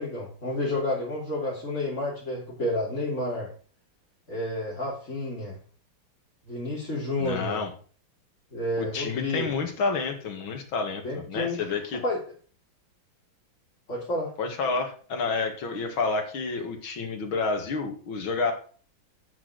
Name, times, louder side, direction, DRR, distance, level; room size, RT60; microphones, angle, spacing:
voice 1, 0.0-3.5 4.3-5.6 6.5-7.6 8.5-9.5 11.0-11.6 12.0-12.2 13.9-14.3, left 1 dB, 35° left, -6 dB, 3.6 m, -30 dB
voice 2, 7.2-7.7 8.8-12.0 14.4-18.5, left 4 dB, 85° left, 4 dB, 2.6 m, -29 dB
9.4 x 6.5 x 6.3 m, 0.41 s
omnidirectional pair, 2.2 m